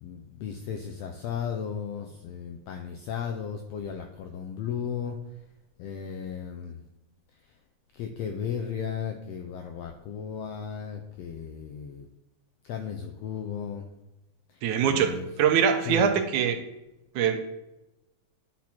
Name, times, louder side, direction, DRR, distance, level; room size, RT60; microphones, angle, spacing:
voice 1, 0.0-5.2 5.8-6.8 7.9-12.1 12.6-13.9 14.5-15.3 15.8-16.1, left 7 dB, 85° left, 5 dB, 1.4 m, -35 dB
voice 2, 14.6-16.6 17.2-17.4, right 7 dB, 80° right, 6 dB, 2.1 m, -23 dB
10.0 x 4.3 x 4.3 m, 0.96 s
omnidirectional pair, 3.5 m